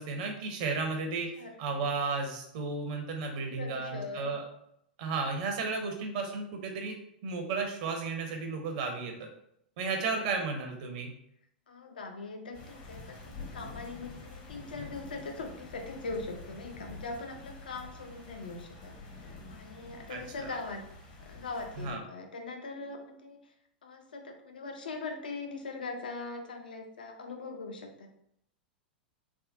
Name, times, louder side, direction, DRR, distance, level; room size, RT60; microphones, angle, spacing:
voice 1, 0.0-4.4 5.0-7.0 7.2-9.3 9.8-11.1 20.1-20.5 21.8-22.0, right 4 dB, 50° right, 3 dB, 0.6 m, -33 dB
voice 2, 3.6-4.3 11.7-20.8 21.2-23.5 23.8-28.1, left 3 dB, 65° left, 4 dB, 0.5 m, -41 dB
sound 1, 12.5-22.0, left 3 dB, 45° left, 0.8 m, -47 dB
3.4 x 2.1 x 2.5 m, 0.73 s
figure-of-eight pair, 90°, 5 cm